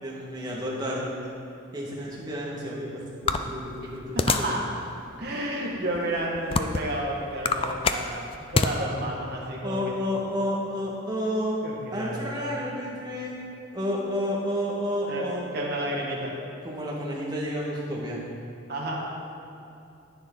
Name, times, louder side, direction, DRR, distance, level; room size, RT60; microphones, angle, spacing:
voice 1, 0.0-1.1 1.7-4.5 9.6-11.6 11.9-13.3 13.7-15.4 16.6-18.2, equal, 20° right, -5 dB, 1.7 m, -30 dB
sound 1, 3.3-4.6 5.1-5.3 6.0-7.0 7.3-8.7, left 4 dB, 25° left, 0.3 m, -25 dB
voice 2, 4.1-4.6 5.2-10.0 11.6-12.5 15.1-15.2 15.5-16.4 18.7-19.0, right 1 dB, 50° right, -3 dB, 1.7 m, -31 dB
10.5 x 9.3 x 3.9 m, 2.7 s
head